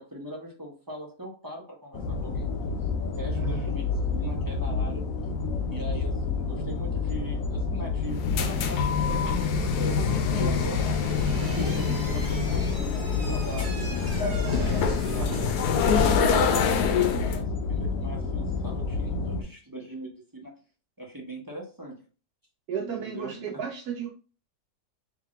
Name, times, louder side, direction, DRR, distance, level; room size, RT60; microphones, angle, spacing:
voice 1, 0.0-2.5 2.8-5.1 5.7-13.8 14.5-20.5 21.0-22.0 22.8-23.6, equal, 15° right, 0.7 m, -41 dB
sound 1, 1.9-19.4, left 4 dB, 65° left, 1.1 m, -29 dB
voice 2, 3.3-3.7 11.6-11.9 22.7-24.1, right 8 dB, 80° right, 1.2 m, -34 dB
sound 2, 8.1-17.4, left 6 dB, 85° left, 1.2 m, -26 dB
Slam / Squeak, 10.8-15.7, right 3 dB, 50° right, 1.0 m, -42 dB
3.7 x 2.9 x 3.6 m
omnidirectional pair, 1.6 m